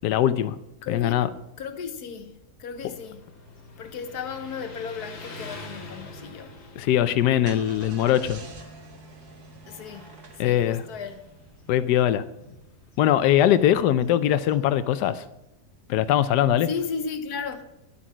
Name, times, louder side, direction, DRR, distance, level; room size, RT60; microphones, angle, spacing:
voice 1, 0.0-0.6 0.9-1.3 6.8-8.4 10.4-10.8 11.7-12.2 13.0-15.2 15.9-16.7, left 11 dB, 90° left, 1.2 m, -21 dB
voice 2, 0.8-1.3 1.6-3.2 3.8-6.6 9.7-11.3 16.6-17.6, left 5 dB, 70° left, 1.4 m, -35 dB
Motorcycle, 2.7-15.3, left 2 dB, 50° left, 2.1 m, -47 dB
Car / Engine starting, 7.1-11.7, right 3 dB, 70° right, 2.2 m, -46 dB
11.0 x 8.4 x 6.0 m
omnidirectional pair, 1.7 m